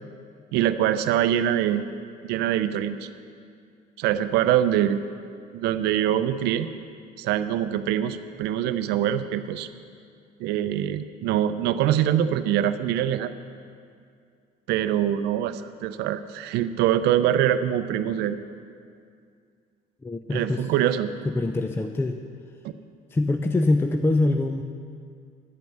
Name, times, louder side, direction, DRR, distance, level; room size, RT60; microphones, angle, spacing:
voice 1, 0.5-1.9 2.3-3.1 4.0-5.0 5.5-6.7 7.2-9.7 10.4-13.3 14.7-18.4 20.3-21.1 22.6-22.7, right 11 dB, 75° right, 12 dB, 0.5 m, -24 dB
voice 2, 20.0-20.7 21.2-22.2 23.1-24.6, left 2 dB, 15° left, 6 dB, 0.4 m, -24 dB
10.5 x 5.3 x 7.6 m, 2.3 s
supercardioid pair, 90°, 17 cm